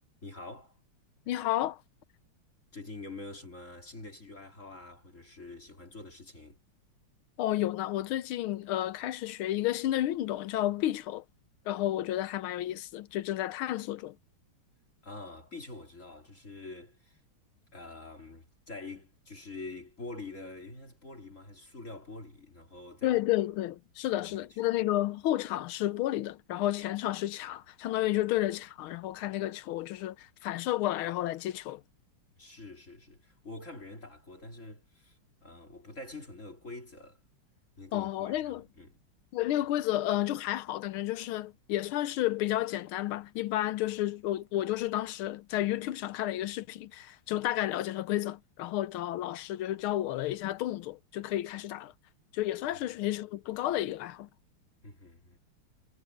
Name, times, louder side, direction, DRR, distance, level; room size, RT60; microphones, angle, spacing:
voice 1, 0.2-0.8 2.7-6.6 15.0-17.2 17.7-23.2 24.1-24.8 32.4-37.2 37.8-39.0 52.6-52.9 54.8-55.4, left 2 dB, 35° left, 3.3 m, -46 dB
voice 2, 1.3-1.8 7.4-11.2 11.7-14.1 23.0-31.8 37.9-38.6 39.3-51.9 52.3-54.3, left 14 dB, 75° left, 1.6 m, -31 dB
omnidirectional pair, 2.4 m